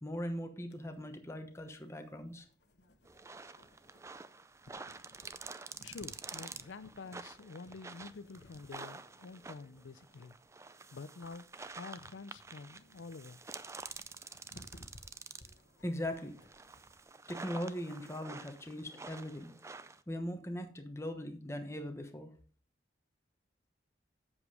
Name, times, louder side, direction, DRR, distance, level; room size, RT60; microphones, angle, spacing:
voice 1, 0.0-2.5 15.8-16.4 17.3-19.5 20.1-22.3, equal, 15° left, 1.0 m, -40 dB
sound 1, 0.7-17.0, left 1 dB, 65° left, 1.2 m, -61 dB
sound 2, 3.0-15.7 16.1-20.0, right 4 dB, 15° right, 0.4 m, -49 dB
voice 2, 5.8-10.4 10.9-11.4 11.7-13.4, left 4 dB, 85° left, 0.5 m, -48 dB
8.1 x 7.2 x 4.8 m
head